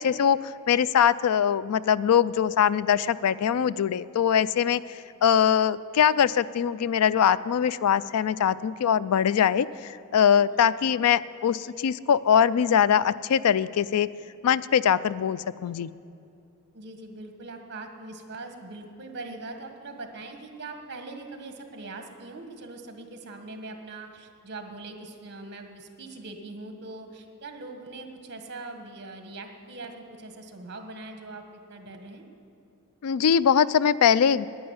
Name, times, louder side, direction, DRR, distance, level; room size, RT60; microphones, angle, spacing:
voice 1, 0.0-14.1 14.4-15.9 33.0-34.5, left 8 dB, 75° left, 18 dB, 0.4 m, -22 dB
voice 2, 16.7-32.2, right 2 dB, 50° right, 5 dB, 1.5 m, -41 dB
11.0 x 9.7 x 9.5 m, 2.6 s
head